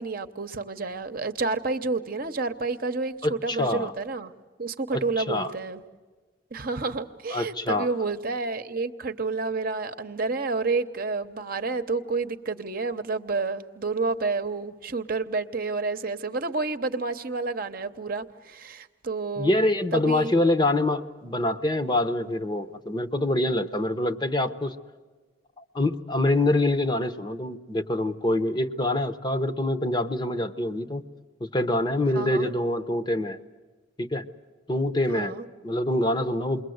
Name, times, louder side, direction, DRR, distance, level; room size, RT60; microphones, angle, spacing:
voice 1, 0.0-4.3 4.6-5.8 6.5-19.6 19.9-20.3 32.1-32.5 35.1-35.5, right 3 dB, 50° right, 8 dB, 0.9 m, -30 dB
voice 2, 3.2-3.9 4.9-5.5 7.3-7.9 19.4-24.7 25.6-31.0 31.4-33.4 34.0-34.3 34.7-35.3 35.6-36.6, left 1 dB, 25° left, 10 dB, 0.8 m, -25 dB
28.5 x 22.0 x 7.9 m, 1.3 s
head